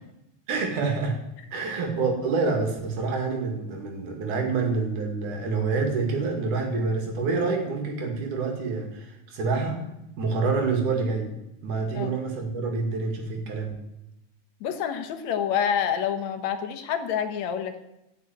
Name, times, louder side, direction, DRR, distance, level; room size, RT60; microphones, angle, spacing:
voice 1, 0.5-1.2 1.5-9.8 10.2-11.3 11.6-13.7, right 4 dB, 90° right, 2 dB, 3.7 m, -27 dB
voice 2, 14.6-17.8, left 8 dB, 70° left, 8 dB, 2.2 m, -27 dB
14.0 x 6.7 x 9.0 m, 0.90 s
omnidirectional pair, 3.5 m